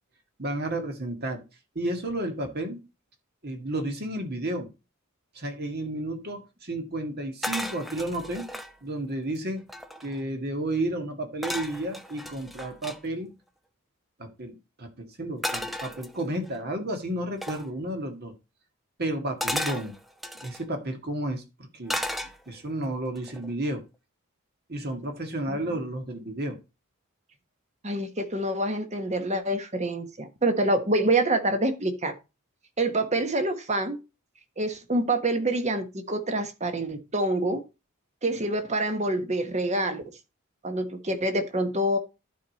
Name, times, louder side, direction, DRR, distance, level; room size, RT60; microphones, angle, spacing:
voice 1, 0.4-1.4 1.8-2.8 3.4-4.7 5.4-8.4 8.8-9.7 10.0-13.3 14.2-18.3 19.0-19.9 20.3-21.5 21.7-22.0 22.5-23.8 24.7-26.6, right 1 dB, 45° right, 1.8 m, -32 dB
sound 1, 7.4-8.7 9.3-9.4 9.6-10.2 11.4-13.0 15.4-16.5 17.4-17.7 19.4-20.6 21.9-22.7 23.2-23.5, equal, ahead, 0.7 m, -34 dB
voice 2, 27.8-32.1 32.8-34.0 34.6-37.6 38.2-40.0 40.6-42.0, right 1 dB, 30° right, 1.3 m, -26 dB
11.5 x 4.9 x 4.1 m
head